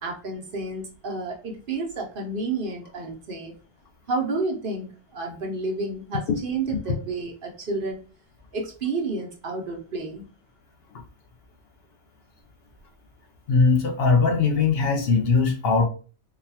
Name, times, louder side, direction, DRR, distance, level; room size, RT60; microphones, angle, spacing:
voice 1, 0.0-3.5 4.1-8.0 8.5-10.3, right 3 dB, 55° right, 1 dB, 0.8 m, -30 dB
voice 2, 13.5-15.9, left 4 dB, 65° left, 4 dB, 0.8 m, -20 dB
3.8 x 2.3 x 2.7 m, 0.37 s
omnidirectional pair, 1.2 m